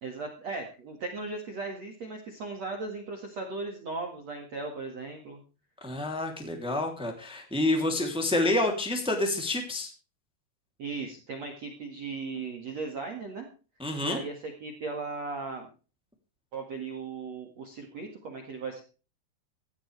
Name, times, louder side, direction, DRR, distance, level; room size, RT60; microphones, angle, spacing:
voice 1, 0.0-5.4 10.8-13.5 14.0-15.7 16.5-18.8, right 3 dB, 50° right, 3 dB, 2.0 m, -37 dB
voice 2, 5.8-9.9 13.8-14.2, left 2 dB, ahead, 3 dB, 1.2 m, -28 dB
17.0 x 14.0 x 3.4 m, 0.36 s
omnidirectional pair, 5.9 m